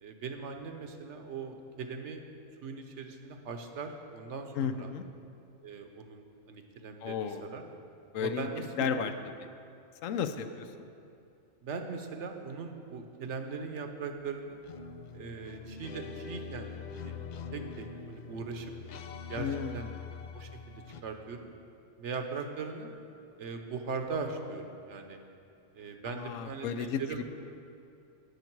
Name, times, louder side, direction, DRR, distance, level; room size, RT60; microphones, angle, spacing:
voice 1, 0.0-2.3 2.6-4.9 5.6-7.6 8.1-8.9 11.6-14.6 15.1-17.2 17.5-18.7 19.3-19.5 19.7-19.9 20.3-21.5 22.0-22.9 23.4-25.2 25.7-27.2, right 4 dB, 65° right, 5 dB, 1.1 m, -40 dB
voice 2, 4.6-5.0 7.0-7.5 8.1-8.5 8.8-9.1 10.0-10.7 19.4-19.9 26.1-27.2, left 7 dB, 85° left, 9 dB, 1.0 m, -33 dB
sound 1, 14.6-21.0, left 5 dB, 70° left, 0.4 m, -43 dB
12.0 x 8.1 x 4.6 m, 2.6 s
omnidirectional pair, 1.3 m